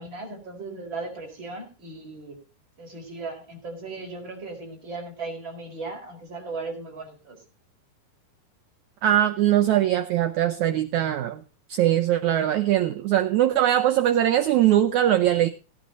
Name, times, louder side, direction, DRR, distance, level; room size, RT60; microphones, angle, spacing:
voice 1, 0.0-2.4 2.8-7.4, right 3 dB, 30° right, 1 dB, 5.1 m, -37 dB
voice 2, 9.0-11.4 11.7-15.5, right 12 dB, 90° right, 7 dB, 1.6 m, -21 dB
17.0 x 10.0 x 4.0 m, 0.34 s
omnidirectional pair, 4.4 m